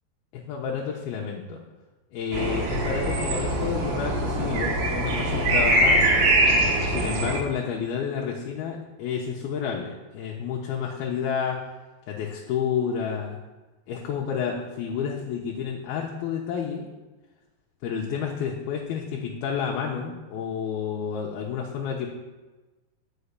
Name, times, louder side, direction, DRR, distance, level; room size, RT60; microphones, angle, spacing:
voice 1, 0.3-1.6 2.1-6.1 6.9-11.6 12.1-13.4 13.9-16.9 17.8-22.1, left 7 dB, 70° left, 0 dB, 2.7 m, -30 dB
sound 1, 2.3-7.4, right 1 dB, 85° right, 4.2 m, -23 dB
11.5 x 6.3 x 8.3 m, 1.2 s
omnidirectional pair, 5.1 m